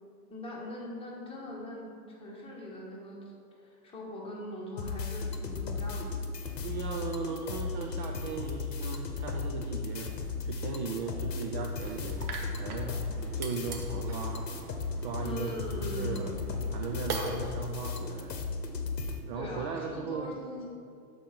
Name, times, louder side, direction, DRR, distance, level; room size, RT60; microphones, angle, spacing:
voice 1, 0.3-3.2 3.6-6.1 6.5-6.6 15.2-16.4 19.3-20.7, left 1 dB, 10° left, -4 dB, 1.5 m, -41 dB
sound 1, 4.8-19.2, left 4 dB, 85° left, 0.9 m, -35 dB
voice 2, 6.6-12.2 12.6-13.0 13.3-14.5 15.0-16.4 16.7-18.5 19.3-20.3, right 4 dB, 35° right, 2 dB, 0.4 m, -37 dB
sound 2, 11.8-17.5, right 4 dB, 70° right, 1.1 m, -42 dB
7.1 x 4.6 x 4.4 m, 2.4 s
hypercardioid pair, 110°, 48 cm